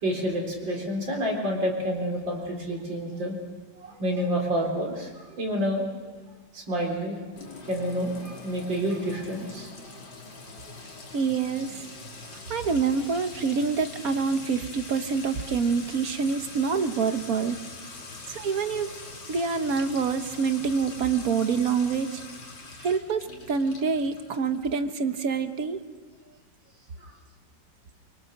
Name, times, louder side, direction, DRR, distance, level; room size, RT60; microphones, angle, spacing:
voice 1, 0.0-3.4 3.8-5.9 6.5-7.2 7.7-10.0, equal, 85° right, 0 dB, 4.6 m, -29 dB
Sink (filling or washing) / Trickle dribble / Fill (with liquid), 7.4-24.8, left 3 dB, 85° left, 3.2 m, -43 dB
voice 2, 11.1-11.8 12.5-17.6 18.3-18.9 19.3-22.2 22.8-25.8, right 5 dB, 55° right, 9 dB, 1.5 m, -26 dB
24.0 x 23.5 x 6.6 m, 1.3 s
omnidirectional pair, 2.0 m